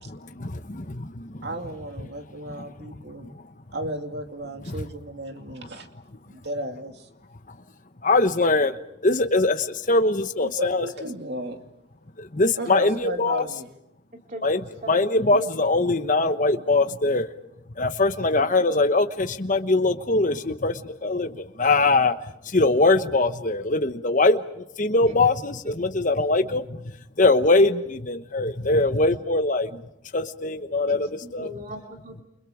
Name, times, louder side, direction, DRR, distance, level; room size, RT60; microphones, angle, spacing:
voice 1, 0.0-1.5 2.0-2.1 2.6-2.9 3.2-3.3 4.7-4.8 8.0-8.8 9.0-10.9 12.2-13.4 14.4-14.6 14.9-17.4 17.8-22.2 22.4-29.8 30.1-31.5, left 2 dB, 40° left, 8 dB, 1.1 m, -22 dB
voice 2, 1.4-3.4 3.7-5.9 6.3-7.1 10.4-11.6 12.6-13.7, right 1 dB, 55° right, 5 dB, 2.4 m, -34 dB
voice 3, 14.3-15.7 18.4-18.9 25.1-25.2 25.6-25.9 30.9-32.2, equal, 40° right, 2 dB, 2.7 m, -40 dB
29.5 x 28.5 x 5.1 m, 0.82 s
head